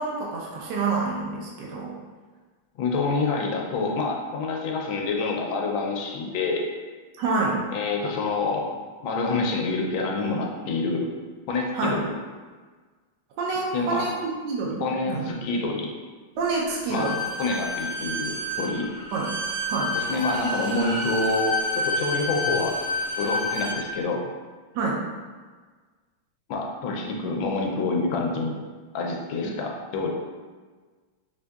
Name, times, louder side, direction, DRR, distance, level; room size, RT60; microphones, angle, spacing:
voice 1, 0.0-2.0 7.2-7.7 11.7-12.0 13.4-15.2 16.4-17.2 19.1-19.3 19.7-19.9 24.7-25.0 29.4-29.6, right 3 dB, 70° right, -3 dB, 1.1 m, -27 dB
voice 2, 2.8-6.6 7.7-11.1 11.5-12.1 13.7-14.1 14.8-15.9 16.9-17.1 17.4-18.9 19.9-22.7 23.2-24.2 26.5-28.6 28.9-30.1, left 3 dB, 75° left, 0 dB, 1.3 m, -27 dB
Bowed string instrument, 16.9-23.8, left 1 dB, 40° right, 0.9 m, -29 dB
5.0 x 2.6 x 2.3 m, 1.4 s
omnidirectional pair, 2.3 m